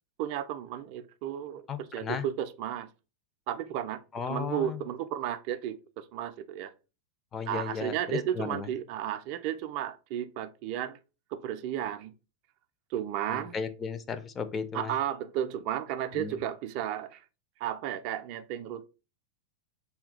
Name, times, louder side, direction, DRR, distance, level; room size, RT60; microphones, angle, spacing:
voice 1, 0.2-2.9 3.5-4.0 4.3-6.7 7.5-11.0 11.3-12.1 12.9-13.5 14.7-17.2 17.6-18.9, right 10 dB, 45° right, 0.3 m, -33 dB
voice 2, 1.7-2.2 4.1-4.8 7.3-8.7 13.3-14.9 16.1-16.4, left 6 dB, 25° left, 0.4 m, -35 dB
3.4 x 2.2 x 3.9 m
figure-of-eight pair, 90°, 0 cm